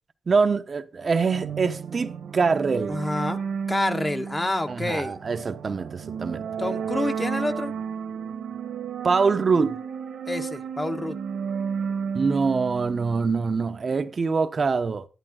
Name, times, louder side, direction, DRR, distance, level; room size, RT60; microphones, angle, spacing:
voice 1, 0.3-3.0 4.7-6.5 9.0-9.8 12.1-15.1, right 4 dB, 45° right, 0.9 m, -24 dB
sound 1, 1.3-13.8, right 6 dB, 85° right, 1.8 m, -33 dB
voice 2, 2.9-3.4 3.7-5.2 6.6-7.7 10.3-11.2, left 2 dB, 20° left, 1.2 m, -28 dB
11.0 x 11.0 x 3.8 m
cardioid pair, 95°, 0 cm